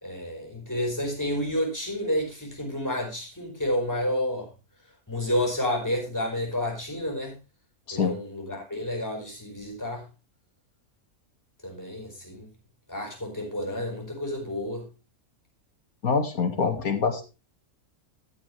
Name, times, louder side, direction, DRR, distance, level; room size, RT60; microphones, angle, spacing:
voice 1, 0.0-4.5 5.1-7.3 7.9-10.0 11.6-12.5 12.9-14.8, left 1 dB, 10° left, 1 dB, 5.0 m, -30 dB
voice 2, 16.0-17.2, left 5 dB, 70° left, 6 dB, 2.5 m, -25 dB
13.5 x 9.6 x 3.4 m, 0.28 s
omnidirectional pair, 1.6 m